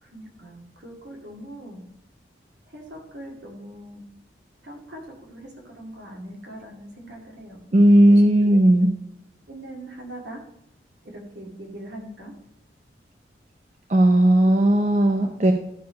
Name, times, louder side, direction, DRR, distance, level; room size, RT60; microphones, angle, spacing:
voice 1, 0.0-1.8 2.7-4.0 4.6-8.6 9.5-10.4 11.0-12.3 14.5-14.8, right 1 dB, 75° right, 0 dB, 2.4 m, -41 dB
voice 2, 7.7-8.9 13.9-15.5, right 1 dB, 40° right, 5 dB, 0.6 m, -16 dB
12.5 x 4.6 x 5.1 m, 0.84 s
head